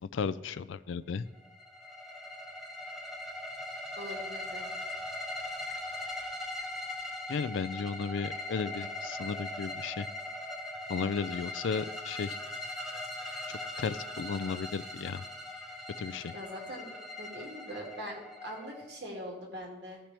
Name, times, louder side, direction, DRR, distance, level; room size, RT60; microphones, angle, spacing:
voice 1, 0.0-1.3 7.3-10.1 10.9-12.4 13.5-15.2 16.0-16.3, left 5 dB, 75° left, 14 dB, 0.4 m, -34 dB
sound 1, 1.3-19.2, left 1 dB, ahead, 1.0 m, -40 dB
voice 2, 4.0-4.7 16.3-16.9 17.2-20.0, equal, 60° right, -1 dB, 2.2 m, -42 dB
15.5 x 5.9 x 3.4 m, 1.1 s
head